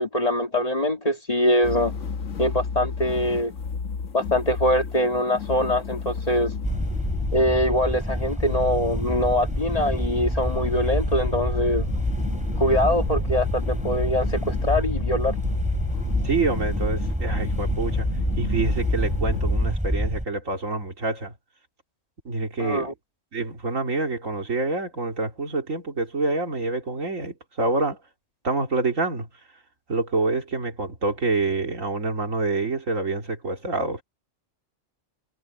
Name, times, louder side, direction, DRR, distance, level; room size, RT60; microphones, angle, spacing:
voice 1, 0.0-1.9 2.4-3.5 4.1-6.5 7.3-11.9 12.6-15.3 22.6-22.9, left 1 dB, 30° left, 1.8 m, -23 dB
sound 1, 1.6-19.7, left 5 dB, 70° left, 1.5 m, -32 dB
sound 2, 6.6-20.3, equal, 5° right, 5.0 m, -27 dB
voice 2, 16.2-18.1 18.4-21.3 22.2-22.9 23.3-28.0 28.4-29.3 29.9-34.0, right 3 dB, 75° right, 3.1 m, -27 dB
omnidirectional pair, 1.3 m